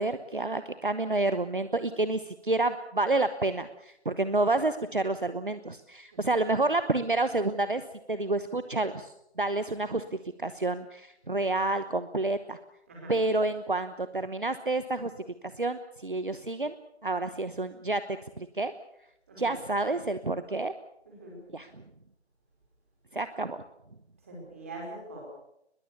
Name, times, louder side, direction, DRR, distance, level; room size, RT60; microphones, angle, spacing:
voice 1, 0.0-10.0 10.4-12.6 13.1-15.1 15.4-16.7 17.0-18.7 19.4-20.7 21.5-21.8 23.1-23.6, right 2 dB, 50° right, 12 dB, 1.1 m, -29 dB
voice 2, 21.0-21.4 24.2-25.2, right 2 dB, 15° right, -2 dB, 5.0 m, -43 dB
23.0 x 21.5 x 7.0 m, 0.79 s
figure-of-eight pair, 170°, 33 cm